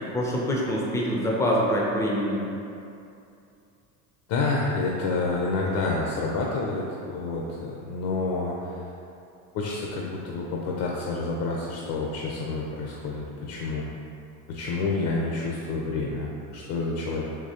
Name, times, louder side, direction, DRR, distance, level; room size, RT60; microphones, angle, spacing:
voice 1, 0.1-2.4, equal, 5° left, -3 dB, 0.4 m, -25 dB
voice 2, 4.3-8.8 9.5-13.9 14.5-17.2, left 3 dB, 55° left, -2 dB, 0.6 m, -29 dB
3.8 x 2.8 x 2.7 m, 2.7 s
hypercardioid pair, 85°, 49 cm